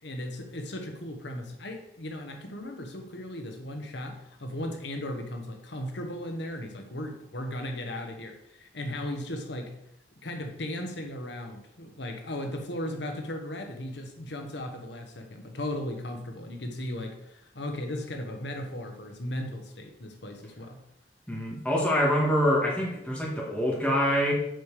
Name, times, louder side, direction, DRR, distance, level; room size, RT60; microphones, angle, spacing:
voice 1, 0.0-9.7 10.2-20.8, left 1 dB, 70° left, 4 dB, 1.2 m, -36 dB
voice 2, 21.3-24.3, equal, 5° left, -3 dB, 2.3 m, -25 dB
7.9 x 4.9 x 6.7 m, 0.79 s
head